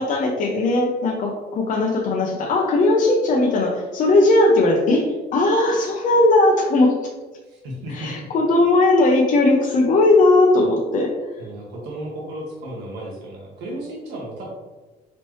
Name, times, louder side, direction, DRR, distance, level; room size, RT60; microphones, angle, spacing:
voice 1, 0.0-7.0 7.9-11.1, left 2 dB, 50° left, -1 dB, 0.6 m, -18 dB
voice 2, 7.5-8.1 11.4-14.5, right 1 dB, 85° right, -3 dB, 1.2 m, -34 dB
4.2 x 3.2 x 3.0 m, 1.2 s
cardioid pair, 110°, 17 cm